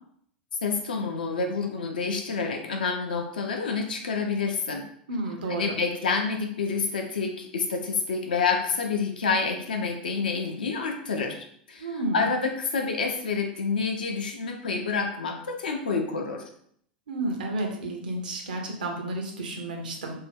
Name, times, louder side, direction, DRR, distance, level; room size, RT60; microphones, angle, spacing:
voice 1, 0.6-4.8 5.5-11.4 11.7-16.4, left 4 dB, 70° left, 2 dB, 0.5 m, -28 dB
voice 2, 5.1-5.7 11.8-12.2 17.1-20.2, right 2 dB, 65° right, 2 dB, 0.6 m, -31 dB
2.6 x 2.1 x 3.5 m, 0.65 s
figure-of-eight pair, 85°, 5 cm